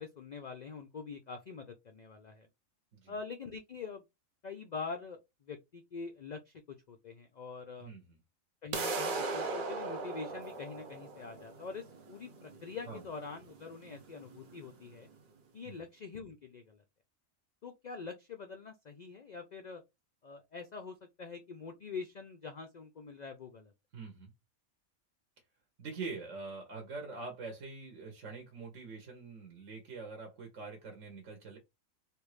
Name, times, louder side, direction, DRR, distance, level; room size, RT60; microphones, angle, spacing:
voice 1, 0.0-2.5 3.1-4.0 4.4-8.0 8.6-15.1 15.5-16.8 17.6-19.8 20.2-23.7, left 4 dB, 75° left, 0.4 m, -45 dB
voice 2, 7.8-8.2 12.9-13.0 15.6-15.8 23.9-24.3 25.8-31.6, right 4 dB, 65° right, 1.3 m, -44 dB
sound 1, 8.7-14.7, right 3 dB, 50° right, 0.7 m, -38 dB
3.3 x 2.5 x 3.2 m
omnidirectional pair, 1.4 m